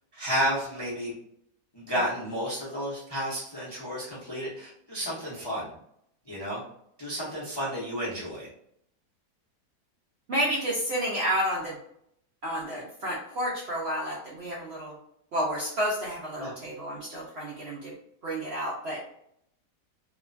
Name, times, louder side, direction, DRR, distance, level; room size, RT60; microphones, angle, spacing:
voice 1, 0.1-1.1 1.7-5.7 6.3-6.6 7.0-8.5 16.4-16.5, equal, 30° left, -8 dB, 0.5 m, -31 dB
voice 2, 10.3-11.8 12.4-14.9 15.3-17.9 18.2-19.0, equal, 65° right, -5 dB, 0.6 m, -30 dB
2.8 x 2.2 x 2.5 m, 0.72 s
omnidirectional pair, 1.8 m